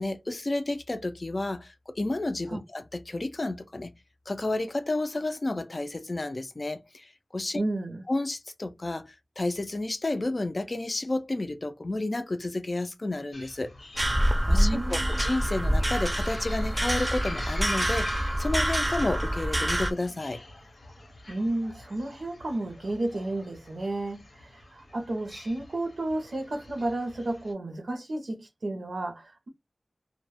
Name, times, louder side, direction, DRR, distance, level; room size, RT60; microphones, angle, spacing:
voice 1, 0.0-3.9 4.3-7.6 8.1-13.7 14.5-20.4, left 2 dB, 50° left, 0.4 m, -31 dB
voice 2, 7.5-8.0 14.5-15.2 21.3-29.5, right 2 dB, 85° right, 0.6 m, -32 dB
sound 1, 13.3-27.5, left 2 dB, 90° left, 0.8 m, -46 dB
sound 2, 14.0-19.9, equal, 25° right, 0.5 m, -26 dB
2.2 x 2.0 x 3.0 m
wide cardioid pair, 60°, 0 cm